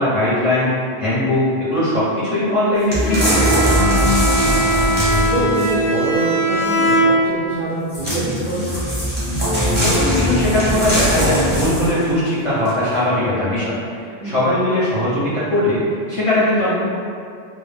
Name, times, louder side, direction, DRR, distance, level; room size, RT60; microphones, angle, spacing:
voice 1, 0.0-3.8 9.7-13.8 14.0-15.8 16.1-16.7, left 1 dB, 35° left, -11 dB, 0.6 m, -19 dB
sound 1, 2.9-5.9 7.9-12.1 12.6-12.7, equal, 10° right, 0.7 m, -20 dB
Bowed string instrument, 3.0-7.6, right 2 dB, 85° left, 0.9 m, -20 dB
voice 2, 4.5-5.0 5.3-8.7 14.2-14.4, right 1 dB, 60° right, -9 dB, 0.6 m, -25 dB
2.2 x 2.0 x 3.3 m, 2.4 s
omnidirectional pair, 1.1 m